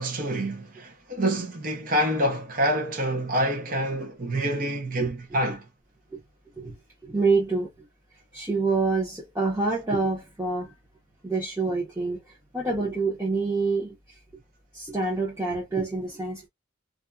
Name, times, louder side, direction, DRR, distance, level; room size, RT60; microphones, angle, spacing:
voice 1, 0.0-5.6, right 1 dB, 40° right, 0.6 m, -27 dB
voice 2, 7.0-7.7 8.3-10.7 11.2-12.2 12.5-13.9 14.7-16.5, right 3 dB, 10° right, 0.8 m, -26 dB
2.5 x 2.3 x 2.3 m
head